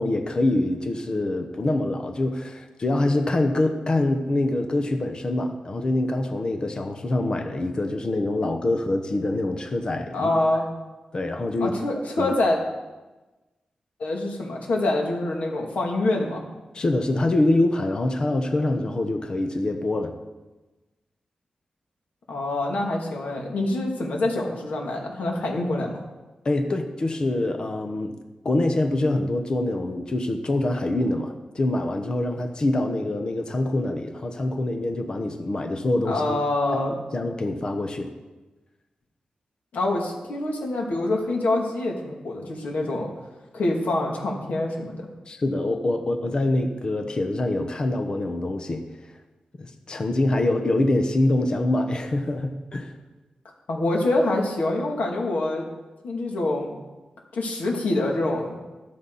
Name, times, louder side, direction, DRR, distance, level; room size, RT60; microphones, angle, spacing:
voice 1, 0.0-10.3 11.1-11.8 12.2-12.3 16.7-20.1 26.4-28.1 28.4-36.4 36.7-36.8 37.1-38.1 45.3-48.9 49.6-53.0, left 2 dB, 35° left, 5 dB, 0.9 m, -25 dB
voice 2, 10.1-10.7 11.6-12.6 14.0-16.5 22.3-26.0 36.0-36.9 39.7-43.1 43.5-45.1 53.7-55.7 56.0-56.8 57.3-58.6, left 2 dB, 90° left, 0 dB, 2.5 m, -25 dB
14.0 x 12.5 x 4.1 m, 1.1 s
wide cardioid pair, 175°, 2 cm